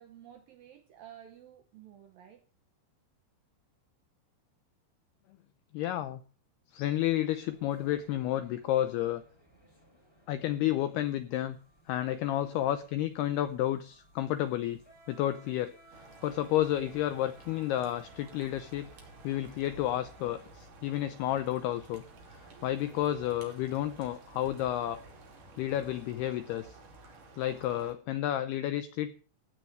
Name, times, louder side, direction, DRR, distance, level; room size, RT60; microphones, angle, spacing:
voice 1, 0.0-2.4, right 10 dB, 75° right, 2.1 m, -52 dB
voice 2, 5.7-6.2 6.7-9.2 10.3-11.6 11.9-14.8 15.1-15.7 16.2-18.9 19.2-22.0 22.3-25.0 25.6-26.8 27.4-29.1, left 13 dB, 85° left, 2.3 m, -31 dB
sound 1, 7.3-25.4, right 1 dB, 5° left, 3.2 m, -60 dB
sound 2, 15.9-27.9, right 2 dB, 45° right, 4.0 m, -53 dB
17.0 x 6.2 x 9.3 m
omnidirectional pair, 5.5 m